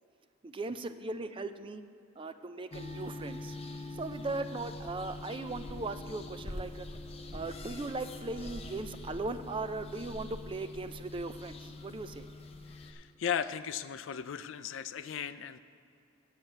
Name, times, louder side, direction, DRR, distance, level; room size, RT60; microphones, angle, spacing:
voice 1, 0.4-1.8 2.2-3.6 3.9-6.9 7.3-12.3, right 3 dB, 25° right, 10 dB, 0.4 m, -38 dB
sound 1, 2.7-12.9, left 2 dB, 30° left, 0.7 m, -44 dB
voice 2, 12.7-15.6, left 8 dB, 70° left, 13 dB, 0.4 m, -36 dB
7.4 x 7.3 x 7.9 m, 2.6 s
head